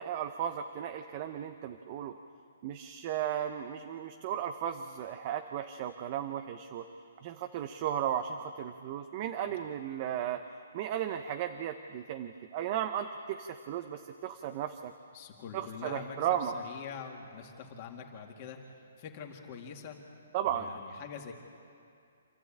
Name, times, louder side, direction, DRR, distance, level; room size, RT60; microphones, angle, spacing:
voice 1, 0.0-2.1 2.6-6.9 7.2-10.4 10.7-14.9 15.5-16.5 20.3-20.7, right 10 dB, 35° right, 7 dB, 0.8 m, -35 dB
voice 2, 15.1-18.6 19.0-20.0 20.5-21.3, left 6 dB, 35° left, 2 dB, 2.4 m, -44 dB
27.5 x 13.0 x 8.8 m, 2.5 s
hypercardioid pair, 160°, 0 cm